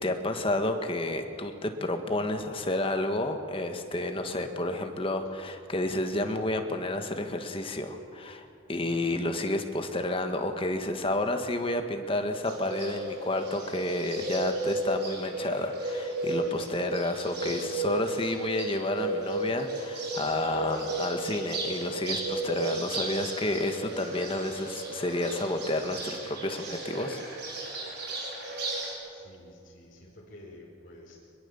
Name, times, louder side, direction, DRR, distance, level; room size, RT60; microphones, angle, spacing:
voice 1, 0.0-27.2, left 1 dB, 30° left, 5 dB, 1.7 m, -30 dB
voice 2, 8.8-9.2 16.3-16.5 29.1-31.2, left 1 dB, 45° left, -5 dB, 5.1 m, -51 dB
Bird, 12.4-28.9, right 2 dB, 55° right, 5.5 m, -34 dB
23.0 x 22.0 x 7.2 m, 2.6 s
head